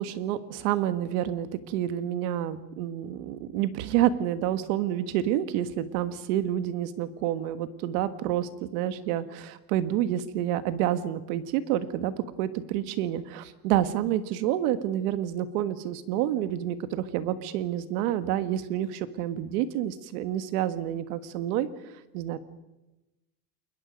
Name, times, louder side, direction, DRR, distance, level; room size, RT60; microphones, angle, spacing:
voice 1, 0.0-21.7 22.1-22.4, right 11 dB, 80° right, 12 dB, 1.6 m, -28 dB
29.5 x 21.5 x 5.3 m, 1.0 s
cardioid pair, 175°, 45 cm